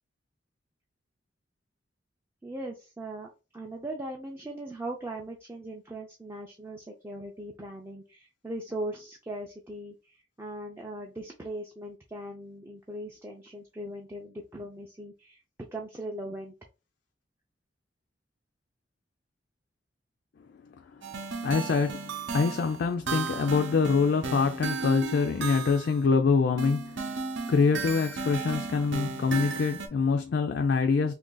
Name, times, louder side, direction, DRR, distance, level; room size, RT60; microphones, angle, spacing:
voice 1, 2.4-15.4 15.7-16.5, right 1 dB, 10° right, 0.3 m, -39 dB
voice 2, 21.0-27.0 27.5-31.1, left 5 dB, 60° left, 0.3 m, -25 dB
sound 1, 21.0-26.0 26.6-29.9, right 4 dB, 70° right, 0.7 m, -35 dB
2.7 x 2.5 x 3.8 m
head